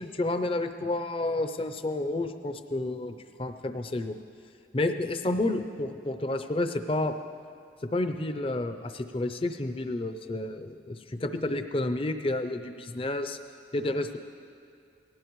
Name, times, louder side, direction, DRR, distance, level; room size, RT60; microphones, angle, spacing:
voice 1, 0.0-3.1 3.4-4.2 4.7-7.2 7.9-13.4 13.7-14.2, left 2 dB, 30° left, 8 dB, 0.6 m, -30 dB
18.5 x 16.5 x 3.1 m, 2.5 s
head